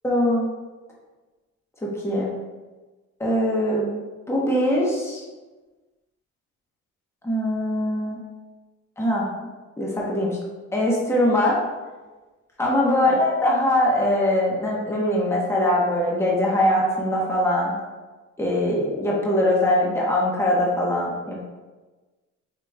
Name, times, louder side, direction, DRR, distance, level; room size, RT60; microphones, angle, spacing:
voice 1, 0.0-0.5 1.8-2.3 3.2-4.0 4.3-5.2 7.2-8.2 9.0-9.3 9.8-10.4 10.7-11.6 12.6-17.7 18.4-21.4, left 1 dB, 10° left, -4 dB, 1.1 m, -22 dB
5.0 x 2.9 x 3.4 m, 1.2 s
cardioid pair, 90°, 30 cm